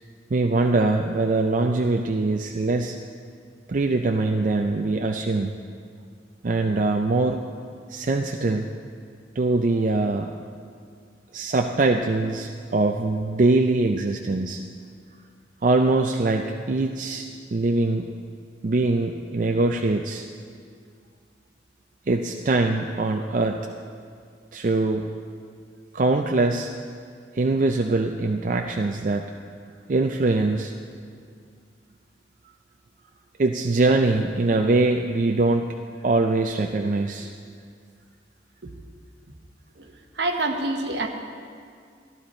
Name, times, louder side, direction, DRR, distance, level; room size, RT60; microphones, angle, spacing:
voice 1, 0.3-3.0 3.7-5.5 6.4-7.4 7.9-8.7 9.4-10.4 11.3-14.6 15.6-17.2 17.5-18.1 18.6-20.3 22.1-23.6 24.5-25.1 25.9-26.7 27.3-29.3 29.9-30.7 33.4-35.7 36.0-37.3, right 2 dB, 45° right, 3 dB, 0.4 m, -22 dB
voice 2, 39.8-41.1, right 2 dB, 70° right, 4 dB, 1.1 m, -27 dB
14.5 x 11.0 x 4.3 m, 2.2 s
head